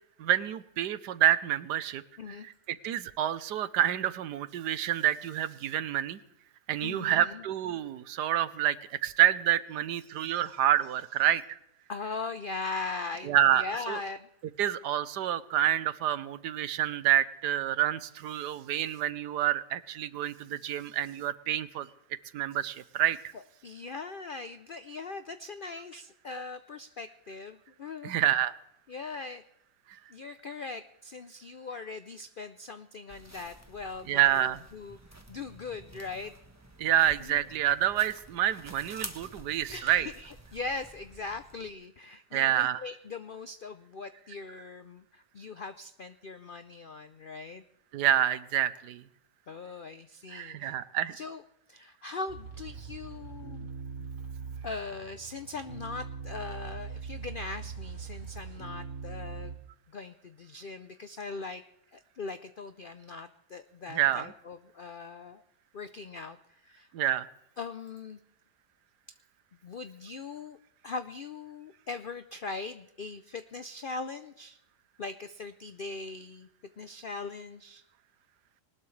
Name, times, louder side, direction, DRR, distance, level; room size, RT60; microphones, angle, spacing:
voice 1, 0.2-2.0 2.3-2.4 2.7-6.2 6.7-8.8 9.0-11.4 13.3-14.0 14.6-21.9 22.3-23.2 28.0-28.6 34.1-34.6 36.8-40.1 42.3-42.8 47.9-49.0 50.3-51.1 63.9-64.3 66.9-67.3, right 11 dB, 85° right, 15 dB, 1.3 m, -28 dB
voice 2, 6.8-7.4 10.2-10.5 11.9-14.3 23.6-28.1 28.9-29.4 30.1-36.3 37.2-37.5 39.7-47.6 49.5-50.8 51.1-51.4 51.7-53.7 54.0-54.1 54.6-59.6 59.9-61.6 61.9-65.4 65.7-66.9 67.6-68.2 69.6-70.6 70.8-74.6 75.0-76.5 76.8-77.8, left 4 dB, 75° left, 10 dB, 0.5 m, -40 dB
sound 1, 33.1-41.7, right 1 dB, 10° right, 1.1 m, -49 dB
sound 2, 52.3-59.6, right 5 dB, 50° right, 2.4 m, -41 dB
21.0 x 19.5 x 3.3 m, 0.80 s
omnidirectional pair, 1.8 m